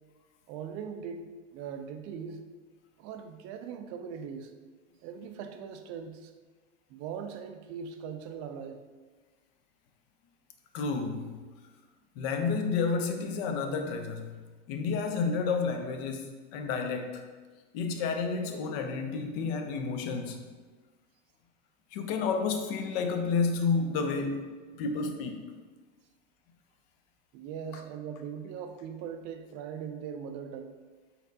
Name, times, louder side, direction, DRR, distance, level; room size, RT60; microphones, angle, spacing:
voice 1, 0.5-2.4 3.0-4.5 5.0-6.3 6.9-8.8 27.3-30.8, right 7 dB, 40° right, 7 dB, 0.4 m, -40 dB
voice 2, 10.7-11.3 12.2-14.4 14.7-17.2 17.7-20.4 21.9-24.5 24.7-25.4, left 4 dB, 50° left, 5 dB, 0.6 m, -30 dB
4.2 x 4.0 x 2.7 m, 1.3 s
hypercardioid pair, 105°, 37 cm